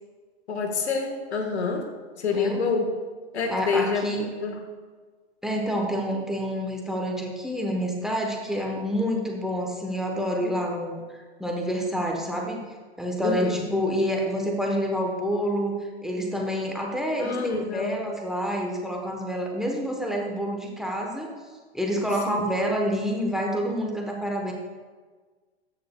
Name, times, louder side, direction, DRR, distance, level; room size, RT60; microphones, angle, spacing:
voice 1, 0.5-1.9 2.2-2.9 3.3-4.1 4.4-4.6 10.4-10.5 13.2-13.6 17.2-18.0 22.3-22.4, left 5 dB, 85° left, 4 dB, 1.4 m, -27 dB
voice 2, 3.5-4.3 5.4-11.0 11.4-12.7 13.0-21.3 21.7-24.5, equal, ahead, 0 dB, 0.9 m, -28 dB
14.0 x 6.4 x 2.2 m, 1.4 s
hypercardioid pair, 115°, 32 cm